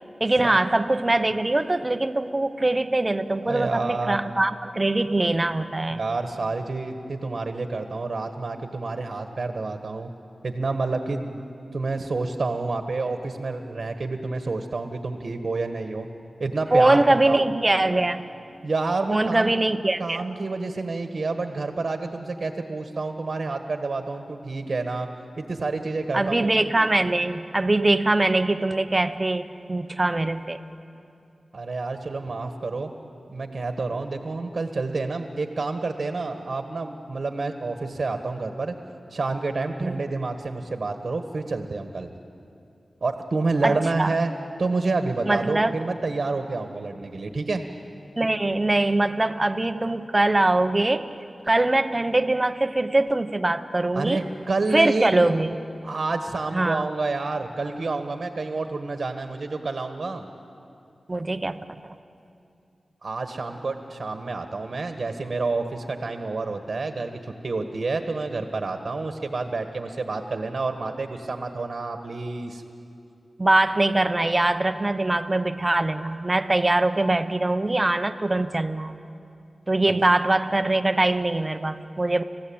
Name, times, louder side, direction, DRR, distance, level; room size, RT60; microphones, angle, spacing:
voice 1, 0.2-6.0 16.7-18.2 19.1-20.2 26.1-30.6 39.8-40.0 43.6-44.1 45.3-45.7 48.2-51.1 51.5-54.2 54.7-55.5 56.5-56.9 61.1-61.6 73.4-79.0 79.7-82.2, right 2 dB, 30° right, 10 dB, 1.0 m, -22 dB
voice 2, 3.4-4.2 5.9-10.1 10.4-11.4 11.7-16.1 16.4-17.4 18.6-19.5 20.0-25.1 25.4-26.5 31.5-32.9 33.3-38.8 39.1-42.1 43.0-44.3 44.6-47.6 53.9-55.1 55.8-60.2 61.1-61.2 63.0-72.6, right 3 dB, 60° right, 7 dB, 1.5 m, -28 dB
30.0 x 15.5 x 8.8 m, 2.6 s
wide cardioid pair, 60°, 0 cm